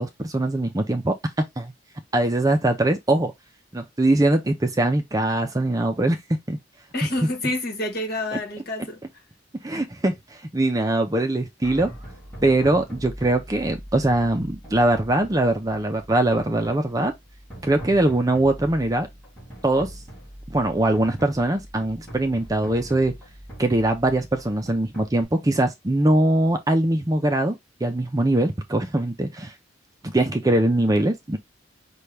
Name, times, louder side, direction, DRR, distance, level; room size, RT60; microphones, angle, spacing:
voice 1, 0.0-1.7 2.1-3.3 3.7-6.2 6.5-6.6 9.6-10.1 10.5-11.9 12.4-17.1 17.6-19.1 19.6-19.9 20.5-23.1 23.6-29.5 30.0-31.4, right 1 dB, 20° right, 0.5 m, -22 dB
voice 2, 6.9-9.0, left 1 dB, 50° left, 1.4 m, -28 dB
sound 1, 11.6-25.2, right 1 dB, 5° left, 3.1 m, -41 dB
5.5 x 2.3 x 3.2 m
head